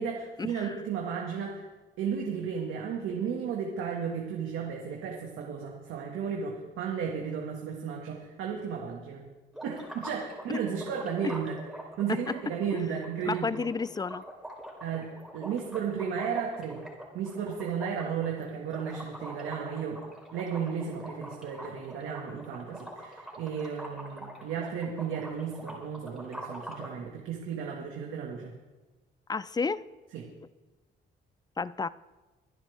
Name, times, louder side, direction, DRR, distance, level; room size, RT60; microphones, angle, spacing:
voice 1, 0.0-1.6 2.0-9.3 9.6-11.6 12.0-13.6 14.8-15.1 15.3-16.8 17.1-20.0 20.3-28.5 30.1-30.2, right 7 dB, 90° right, -1 dB, 2.0 m, -34 dB
sound 1, 9.5-27.0, right 1 dB, ahead, 3.9 m, -44 dB
voice 2, 13.3-14.2 29.3-29.9 31.6-31.9, left 4 dB, 20° left, 17 dB, 0.5 m, -31 dB
24.0 x 10.0 x 3.5 m, 1.2 s
cardioid pair, 90°, 20 cm